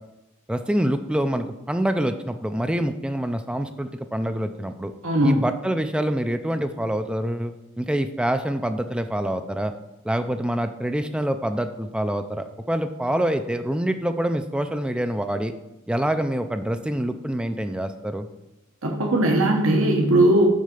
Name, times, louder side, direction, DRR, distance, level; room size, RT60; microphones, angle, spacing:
voice 1, 0.5-4.9 5.2-9.7 10.0-15.5 15.9-18.3, right 1 dB, 5° right, 8 dB, 0.3 m, -26 dB
voice 2, 5.0-5.3 18.8-20.5, right 1 dB, 65° right, 1 dB, 1.0 m, -19 dB
6.4 x 4.7 x 6.7 m, 0.96 s
head